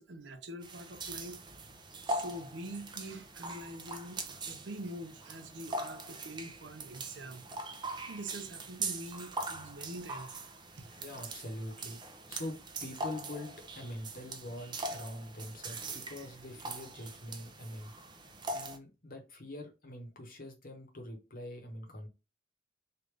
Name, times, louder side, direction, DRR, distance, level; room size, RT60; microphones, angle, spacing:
voice 1, 0.0-1.4 2.1-7.7 8.1-10.4 10.8-10.9, right 1 dB, 65° right, 0.7 m, -45 dB
sound 1, 0.6-18.8, right 2 dB, 25° right, 0.5 m, -42 dB
voice 2, 11.0-17.9 18.5-22.1, left 1 dB, 50° left, 1.0 m, -44 dB
3.3 x 2.5 x 3.2 m
head